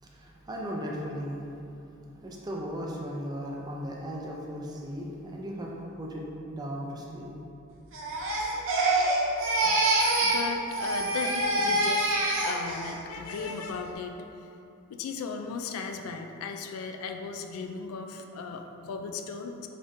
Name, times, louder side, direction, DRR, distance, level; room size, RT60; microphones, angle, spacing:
voice 1, 0.0-1.4 2.2-7.3, equal, 20° right, -2 dB, 0.4 m, -36 dB
Crying sobbing, 7.9-10.5 10.7-12.9 13.3-13.7, right 2 dB, 65° right, 0.6 m, -26 dB
voice 2, 9.6-12.1 12.4-14.3 14.9-19.7, left 4 dB, 90° left, 6 dB, 0.3 m, -37 dB
3.9 x 3.5 x 2.6 m, 2.7 s
head